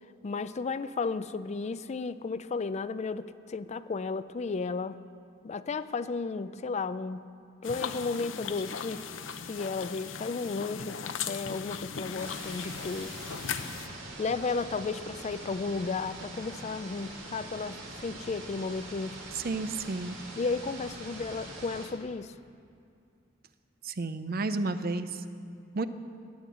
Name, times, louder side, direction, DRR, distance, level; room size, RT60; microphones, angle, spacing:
voice 1, 0.2-5.0 5.4-7.3 7.6-9.0 9.4-13.2 14.2-19.2 20.4-22.3, left 4 dB, 35° left, 13 dB, 0.4 m, -34 dB
sound 1, 7.6-13.9, left 6 dB, 75° left, 0.8 m, -38 dB
sound 2, 12.2-21.9, right 2 dB, 85° right, 3.0 m, -44 dB
voice 2, 19.4-20.2 23.8-25.1 25.7-25.9, right 3 dB, 50° right, 11 dB, 0.6 m, -31 dB
13.5 x 9.4 x 8.4 m, 2.4 s
head